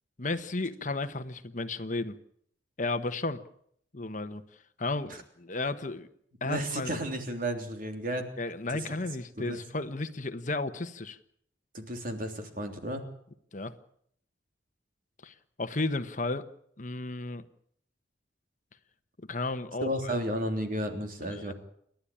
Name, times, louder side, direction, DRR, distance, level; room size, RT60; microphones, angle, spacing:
voice 1, 0.2-2.2 2.8-3.4 3.9-6.1 6.4-7.0 8.4-11.2 13.5-13.7 15.2-16.5 16.8-17.5 19.2-20.1 21.2-21.5, left 2 dB, 45° left, 9 dB, 1.2 m, -34 dB
voice 2, 6.4-8.3 9.4-9.6 11.7-13.1 19.8-21.5, equal, 50° right, 5 dB, 3.4 m, -33 dB
29.5 x 11.5 x 8.7 m, 0.68 s
head